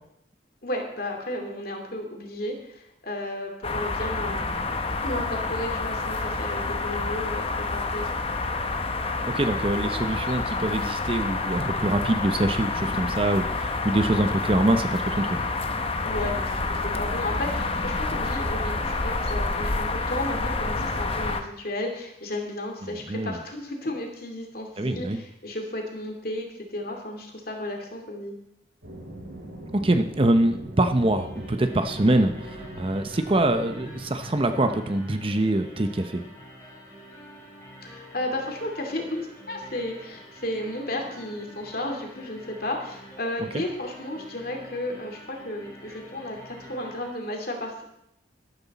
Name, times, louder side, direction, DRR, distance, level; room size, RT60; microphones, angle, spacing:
voice 1, 0.6-4.4 5.0-8.2 16.0-28.3 37.8-47.8, left 1 dB, 50° left, 2 dB, 2.5 m, -33 dB
sound 1, 3.6-21.4, left 3 dB, 30° left, 0.9 m, -28 dB
voice 2, 9.3-15.4 22.8-23.4 24.8-25.2 29.7-36.2 43.4-43.6, right 1 dB, 30° right, 8 dB, 0.7 m, -24 dB
sound 2, 28.8-34.7, right 1 dB, 85° right, 5.5 m, -40 dB
sound 3, 31.1-47.1, equal, 15° left, 4.2 m, -47 dB
13.0 x 12.0 x 4.2 m, 0.79 s
head